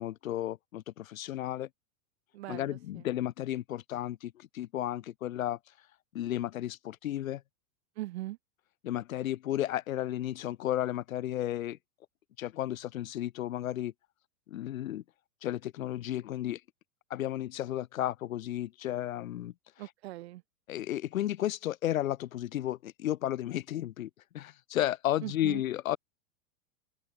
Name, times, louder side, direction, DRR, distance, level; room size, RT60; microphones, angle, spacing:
voice 1, 0.0-1.7 2.5-5.6 6.1-7.4 8.8-11.8 12.4-13.9 14.5-15.0 15.4-16.6 17.1-19.5 20.7-24.1 24.3-26.0, left 13 dB, 65° left, 3.9 m, -33 dB
voice 2, 2.3-3.0 8.0-8.4 19.8-20.4 25.2-25.6, right 17 dB, 45° right, 3.4 m, -40 dB
open air
supercardioid pair, 180°, 44 cm